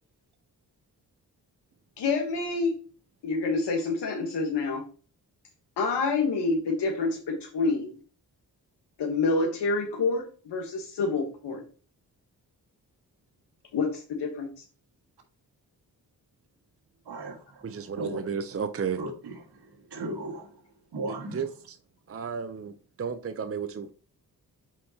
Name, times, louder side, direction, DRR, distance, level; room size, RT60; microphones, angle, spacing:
voice 1, 2.0-2.7 3.2-4.8 5.8-8.0 9.0-11.6 13.7-14.5, left 3 dB, 75° left, 1.3 m, -27 dB
voice 2, 17.1-18.2 19.0-21.5, right 2 dB, 70° right, 1.8 m, -37 dB
voice 3, 17.6-19.0 21.3-21.8 22.1-23.9, right 6 dB, 35° right, 0.7 m, -33 dB
8.4 x 4.3 x 2.8 m
supercardioid pair, 45°, 41 cm